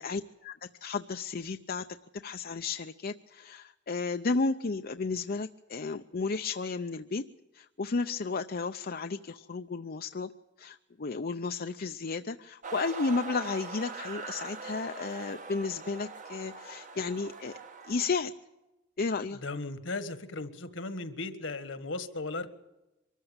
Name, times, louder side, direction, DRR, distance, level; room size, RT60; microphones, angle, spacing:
voice 1, 0.0-1.9 2.2-7.2 7.5-10.3 10.6-17.6 17.9-18.3 19.0-19.4, left 4 dB, 50° left, 7 dB, 0.6 m, -33 dB
sound 1, 12.6-18.2, right 4 dB, 40° right, 1.3 m, -42 dB
voice 2, 19.4-22.5, left 3 dB, 75° left, 11 dB, 1.7 m, -36 dB
24.0 x 14.0 x 8.9 m, 0.99 s
head